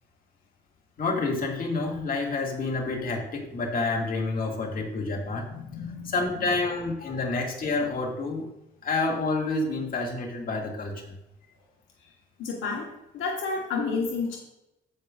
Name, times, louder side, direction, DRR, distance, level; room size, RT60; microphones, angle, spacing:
voice 1, 1.0-8.5 8.8-11.2, left 3 dB, 45° left, -1 dB, 2.2 m, -29 dB
voice 2, 5.5-6.7 7.1-7.2 12.4-14.4, left 4 dB, 80° left, 0 dB, 1.3 m, -32 dB
15.5 x 5.4 x 2.5 m, 0.91 s
cardioid pair, 90°, 20 cm